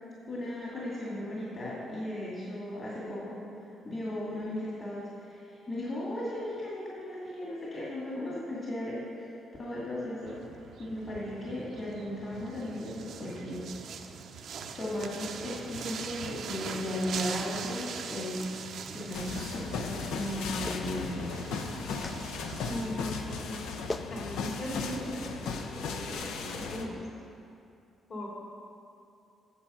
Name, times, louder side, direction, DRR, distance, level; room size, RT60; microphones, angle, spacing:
voice 1, 0.3-3.5 3.8-9.0 9.6-10.4 10.8-13.7 14.8-18.7 18.9-21.4, left 1 dB, 40° left, -6 dB, 2.2 m, -36 dB
sound 1, 10.3-23.0, right 6 dB, 65° right, 0.6 m, -42 dB
sound 2, 19.1-26.9, left 4 dB, 90° left, 0.6 m, -36 dB
Clapping, 20.7-20.9 22.0-22.2 23.5-23.6 23.9-24.1 25.2-25.4, left 2 dB, 25° left, 0.3 m, -38 dB
voice 2, 22.6-23.7 24.1-27.0 28.1-28.3, equal, 55° left, -3 dB, 2.6 m, -38 dB
8.9 x 7.4 x 5.5 m, 2.6 s
cardioid pair, 90°, 0 cm